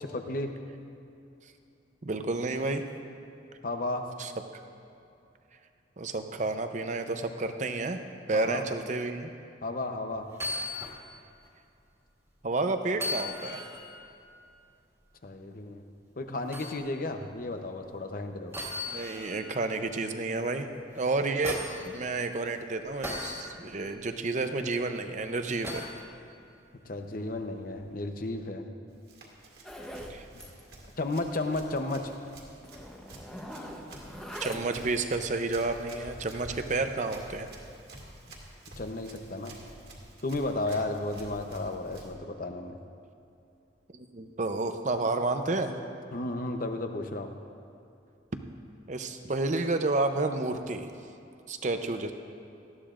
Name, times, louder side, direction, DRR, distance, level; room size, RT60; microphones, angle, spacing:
voice 1, 0.1-0.5 3.6-4.1 8.3-8.6 9.6-10.3 15.2-15.8 16.2-18.5 26.8-28.7 31.0-32.1 38.8-39.6 40.2-42.8 46.1-47.3, left 2 dB, 50° left, 5 dB, 0.8 m, -33 dB
voice 2, 2.0-2.8 4.2-4.3 6.0-8.0 8.3-9.3 12.4-13.6 18.9-20.7 21.0-21.6 21.8-25.9 30.1-30.2 34.4-37.5 43.9-45.8 48.9-50.9 51.5-52.1, right 3 dB, 40° right, 7 dB, 0.7 m, -30 dB
sound 1, 10.3-11.0 11.4-11.5 12.9-13.9 16.5-16.8 18.5-19.5 20.9-21.9 23.0-23.4 25.6-26.0 27.8-27.9, left 2 dB, 15° right, 1.8 m, -36 dB
Run, 28.9-42.1, right 1 dB, 55° right, 2.0 m, -49 dB
Zipper (clothing), 29.6-30.1 30.4-30.6 30.9-31.0 31.4-31.5 32.2-32.3 32.6-34.9, equal, 5° left, 0.9 m, -42 dB
18.5 x 13.5 x 2.5 m, 2.6 s
head